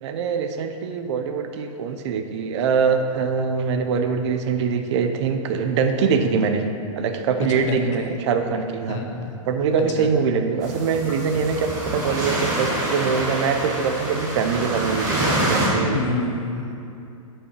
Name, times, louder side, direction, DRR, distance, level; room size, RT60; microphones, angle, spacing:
voice 1, 0.0-6.7 7.0-9.0 9.5-16.0, right 5 dB, 55° right, 6 dB, 0.5 m, -23 dB
voice 2, 7.5-8.1 8.9-9.4 9.9-10.1 15.9-16.7, left 3 dB, 55° left, 3 dB, 0.9 m, -28 dB
sound 1, 10.6-15.7, right 1 dB, 20° right, 1.5 m, -26 dB
11.5 x 5.5 x 2.9 m, 2.7 s
hypercardioid pair, 155°, 18 cm